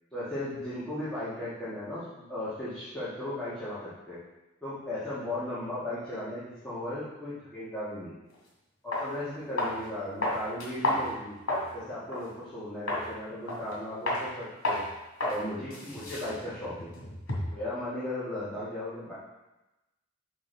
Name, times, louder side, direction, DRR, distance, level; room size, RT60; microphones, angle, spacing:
voice 1, 0.1-4.2 4.6-8.2 8.8-11.4 11.7-14.8 15.3-16.9 17.5-19.1, left 1 dB, 5° left, -13 dB, 1.9 m, -36 dB
sound 1, 8.3-8.4 8.9-9.1 9.6-9.9 10.2-11.7 12.1-12.3 12.9-13.1 13.5-13.8 14.1-14.3 14.6-14.9 15.2-15.4 15.7-17.6, left 1 dB, 85° left, 2.2 m, -31 dB
6.3 x 5.6 x 4.0 m, 1.0 s
head